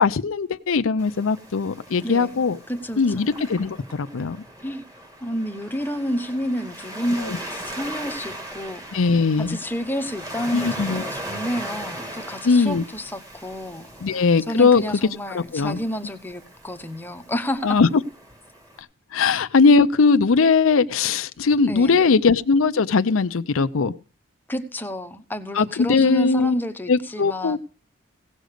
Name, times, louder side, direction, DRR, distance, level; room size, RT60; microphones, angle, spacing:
voice 1, 0.0-2.6 3.0-4.4 7.2-7.4 8.9-9.6 10.5-11.0 12.4-12.8 14.0-14.8 15.3-15.8 17.6-17.9 19.1-23.9 25.5-26.5 26.9-27.6, left 4 dB, 80° left, 0.6 m, -19 dB
Waves surf, 1.0-18.8, right 1 dB, 15° right, 2.2 m, -38 dB
voice 2, 2.0-3.4 4.6-4.8 5.2-9.0 9.4-17.8 21.7-22.1 24.5-27.6, equal, 10° left, 0.9 m, -30 dB
17.0 x 6.4 x 6.6 m
head